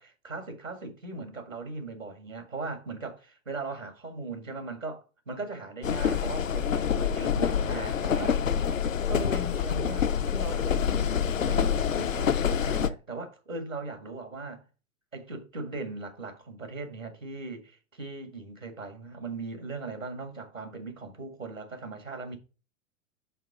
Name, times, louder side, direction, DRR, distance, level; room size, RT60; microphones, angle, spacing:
voice 1, 0.0-8.4 9.1-11.2 11.4-14.6 15.1-22.4, right 3 dB, 90° right, 1.9 m, -39 dB
sound 1, 5.8-12.9, left 8 dB, 80° left, 0.6 m, -27 dB
5.7 x 4.6 x 4.9 m
figure-of-eight pair, 95°, 38 cm